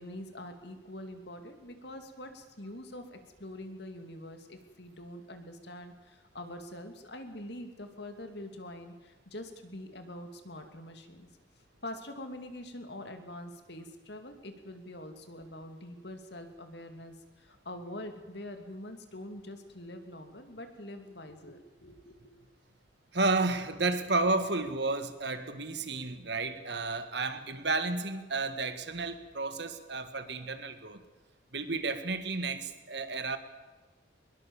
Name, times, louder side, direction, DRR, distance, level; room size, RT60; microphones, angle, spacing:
voice 1, 0.0-11.3 11.8-22.3, left 1 dB, 55° left, 7 dB, 2.6 m, -44 dB
voice 2, 23.1-31.0 31.5-33.4, right 3 dB, 60° right, 9 dB, 1.9 m, -32 dB
23.5 x 21.5 x 7.3 m, 1.2 s
head